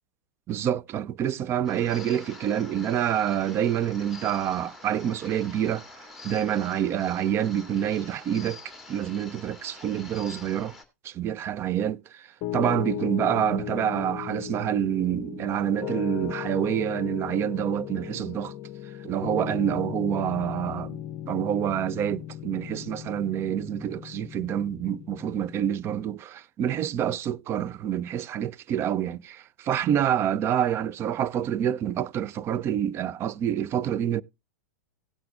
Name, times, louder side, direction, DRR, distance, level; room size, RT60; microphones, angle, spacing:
voice 1, 0.5-5.8 6.2-8.6 8.9-10.7 11.0-12.3 12.5-18.5 19.0-34.2, right 10 dB, 30° right, 0.5 m, -27 dB
sound 1, 1.6-10.8, left 2 dB, 5° right, 1.9 m, -46 dB
Piano, 12.4-25.8, left 12 dB, 40° left, 0.6 m, -36 dB
17.0 x 7.7 x 2.3 m
hypercardioid pair, 105°, 9 cm